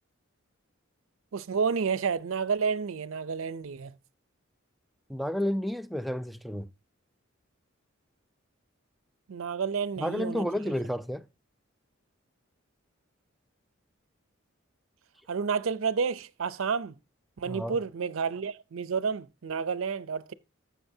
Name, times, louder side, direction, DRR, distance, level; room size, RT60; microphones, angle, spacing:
voice 1, 1.3-3.9 9.3-10.7 15.3-16.9 17.4-20.3, right 5 dB, 75° right, 0.5 m, -30 dB
voice 2, 5.1-6.7 10.0-11.2 17.5-17.8, equal, ahead, 0.4 m, -31 dB
13.5 x 6.1 x 2.7 m
head